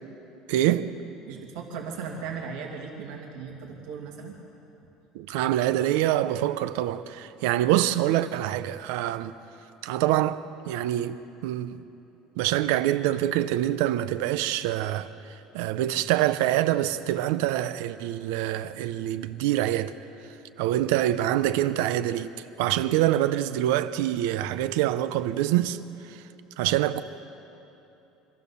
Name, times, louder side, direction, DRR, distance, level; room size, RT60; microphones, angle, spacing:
voice 1, 0.5-0.9 5.1-9.3 9.8-11.8 12.4-15.1 15.5-19.9 20.6-22.3 22.6-25.8 26.1-26.2 26.6-27.0, right 13 dB, 80° right, 0.7 m, -25 dB
voice 2, 1.2-4.4, right 5 dB, 65° right, 2.4 m, -37 dB
25.0 x 15.5 x 7.0 m
cardioid pair, 180°, 0 cm